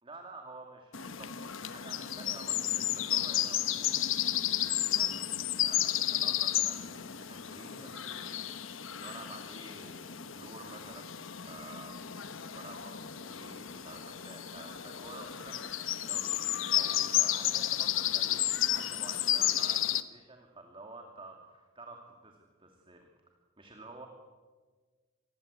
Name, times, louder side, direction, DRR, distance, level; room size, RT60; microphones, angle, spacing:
voice 1, 0.0-11.2 11.4-12.0 12.5-23.1 23.6-24.1, right 3 dB, 25° right, 3 dB, 2.5 m, -50 dB
sound 1, 0.9-20.0, left 12 dB, 65° left, 1.1 m, -32 dB
27.0 x 20.5 x 8.3 m, 1.4 s
head